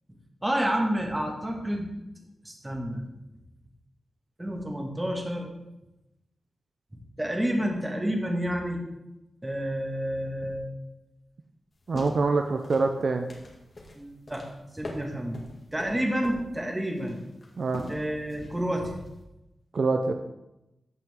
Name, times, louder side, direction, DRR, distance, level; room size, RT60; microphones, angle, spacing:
voice 1, 0.4-1.9 2.4-3.1 4.4-5.5 7.2-8.8 9.4-10.7 14.0-14.4 14.7-15.4 15.7-17.2 17.9-18.9, equal, 15° right, 1 dB, 2.1 m, -29 dB
sound 1, 11.7-19.2, left 1 dB, 45° left, 2.2 m, -44 dB
voice 2, 11.9-13.3 17.6-17.9 19.7-20.1, right 3 dB, 60° right, 5 dB, 0.6 m, -25 dB
15.5 x 5.7 x 3.7 m, 0.92 s
wide cardioid pair, 85°, 0 cm